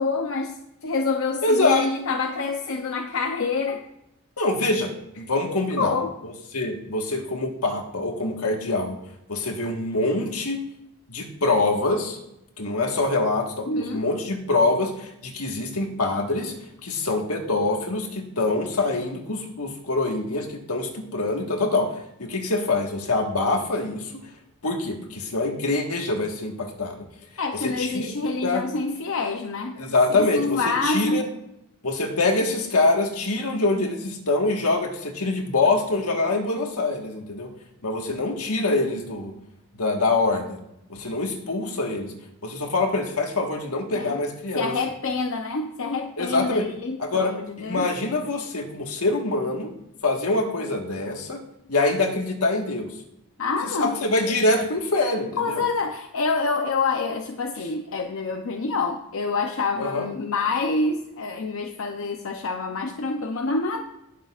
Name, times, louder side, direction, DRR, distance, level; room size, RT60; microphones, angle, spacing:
voice 1, 0.0-3.9 5.5-6.1 13.7-14.1 27.4-29.8 30.1-31.3 43.9-44.2 44.5-47.9 53.4-54.0 55.4-63.9, left 3 dB, 65° left, 4 dB, 0.7 m, -27 dB
voice 2, 1.4-1.9 4.4-5.9 6.5-9.0 9.3-10.6 11.1-12.2 12.6-16.5 16.8-24.1 24.6-27.0 27.6-28.1 28.4-28.6 29.8-31.2 31.8-37.5 37.8-39.3 39.8-40.6 40.9-42.1 42.4-44.7 46.2-46.7 47.0-47.3 47.6-49.7 50.0-51.4 51.7-52.9 53.8-55.6 59.8-60.1, left 2 dB, 85° left, 2 dB, 1.6 m, -25 dB
19.0 x 6.8 x 2.5 m, 0.83 s
head